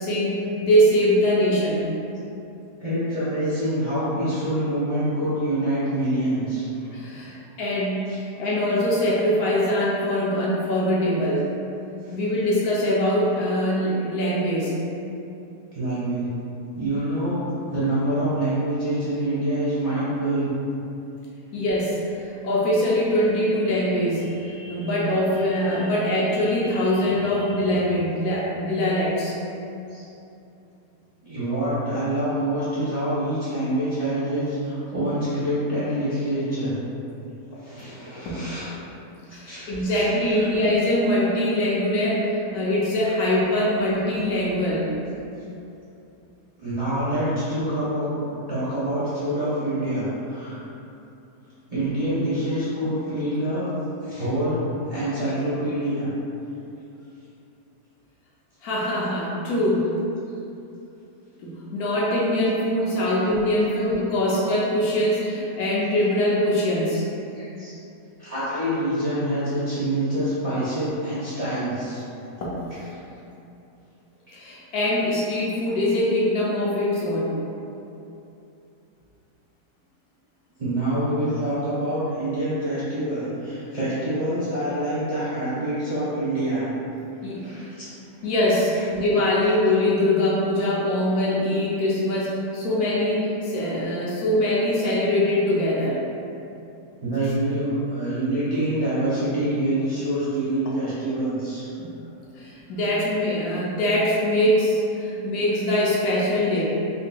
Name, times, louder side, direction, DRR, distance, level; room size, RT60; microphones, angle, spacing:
voice 1, 0.0-1.9 6.9-11.5 12.1-14.8 21.5-29.4 38.2-38.5 39.3-44.9 58.6-59.9 61.4-67.0 72.4-72.6 74.3-77.4 87.2-87.5 88.2-96.0 101.8-101.9 102.3-106.6, left 1 dB, 70° left, -6 dB, 1.0 m, -23 dB
voice 2, 2.8-7.3 8.1-8.2 12.0-12.2 15.7-16.3 16.8-17.4 17.7-20.5 29.9-30.0 31.2-36.8 37.5-38.7 39.3-40.5 46.6-50.6 51.7-53.7 54.0-56.1 63.0-63.2 63.7-63.8 67.3-67.7 68.2-72.0 80.6-86.6 87.4-87.9 97.0-101.7, right 1 dB, 30° right, -13 dB, 0.7 m, -26 dB
4.2 x 2.8 x 2.2 m, 2.8 s
omnidirectional pair, 1.8 m